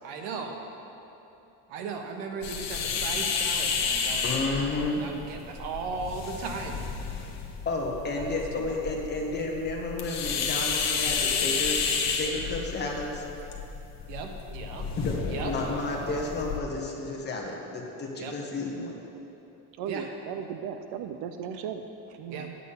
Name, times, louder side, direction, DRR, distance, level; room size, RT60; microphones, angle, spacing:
voice 1, 0.0-0.6 1.7-6.9 8.1-8.3 8.5-8.7 14.1-14.9 15.3-15.5 18.2-18.3 19.9-20.1 22.3-22.5, right 4 dB, 85° right, 3 dB, 1.4 m, -37 dB
sound 1, 2.4-16.6, left 5 dB, 40° left, 1.1 m, -31 dB
voice 2, 4.2-5.0 7.6-11.8 12.1-13.2 15.0-18.9, left 2 dB, 25° left, -1 dB, 1.4 m, -31 dB
voice 3, 19.8-22.6, right 7 dB, 70° right, 7 dB, 0.7 m, -36 dB
10.5 x 8.3 x 5.7 m, 2.9 s
cardioid pair, 160°, 41 cm